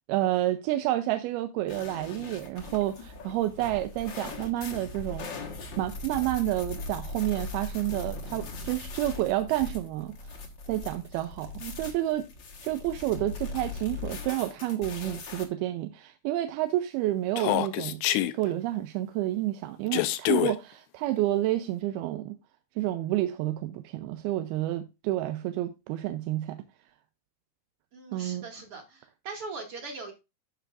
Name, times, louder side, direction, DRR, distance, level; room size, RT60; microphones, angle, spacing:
voice 1, 0.1-5.3 5.8-10.2 10.7-12.3 12.6-18.0 18.3-22.4 22.8-26.6 28.1-28.4, right 15 dB, 85° right, 2.5 m, -29 dB
sound 1, 1.7-15.5, left 3 dB, 60° left, 1.2 m, -40 dB
Human voice, 17.4-18.3 19.9-20.5, left 15 dB, 85° left, 2.7 m, -26 dB
voice 2, 27.9-30.1, right 3 dB, 45° right, 2.3 m, -40 dB
13.5 x 5.6 x 2.5 m
omnidirectional pair, 4.5 m